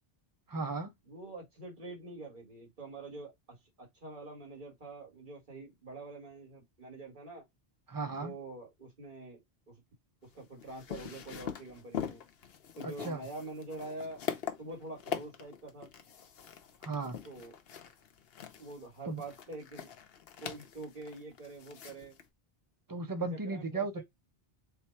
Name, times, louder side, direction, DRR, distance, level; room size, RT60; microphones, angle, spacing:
voice 1, 0.5-0.9 7.9-8.3 12.8-13.2 16.8-17.2 19.1-19.2 22.9-24.0, right 3 dB, 30° right, 0.4 m, -35 dB
voice 2, 1.0-7.4 8.2-9.4 9.7-9.8 10.2-12.2 12.8-14.2 14.6-15.9 17.2-17.5 18.6-19.9 20.4-22.2 23.3-24.0, right 2 dB, 50° right, 1.9 m, -46 dB
sound 1, 10.3-22.2, left 8 dB, 70° left, 0.9 m, -43 dB
3.4 x 2.2 x 4.3 m
omnidirectional pair, 1.0 m